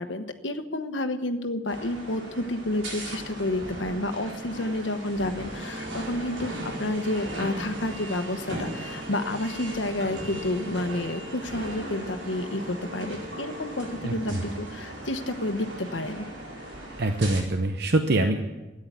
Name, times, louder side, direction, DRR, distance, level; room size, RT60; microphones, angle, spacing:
voice 1, 0.0-16.3, left 1 dB, 75° left, 9 dB, 1.1 m, -30 dB
sound 1, 1.7-17.4, right 1 dB, 75° right, 4.6 m, -37 dB
voice 2, 17.0-18.4, right 2 dB, 60° right, 6 dB, 0.8 m, -24 dB
13.5 x 9.7 x 8.8 m, 1.1 s
head